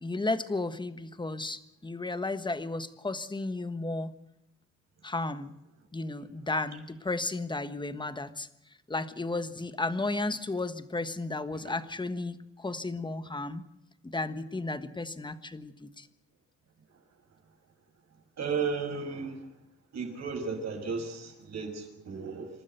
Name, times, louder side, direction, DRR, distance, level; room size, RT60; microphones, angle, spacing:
voice 1, 0.0-4.1 5.0-5.5 5.9-8.5 8.9-13.6 14.0-16.1, left 2 dB, 15° left, 11 dB, 1.4 m, -33 dB
voice 2, 18.4-19.4 19.9-22.5, right 5 dB, 60° right, 4 dB, 6.0 m, -34 dB
27.5 x 12.5 x 8.1 m, 0.87 s
cardioid pair, 90°, 30 cm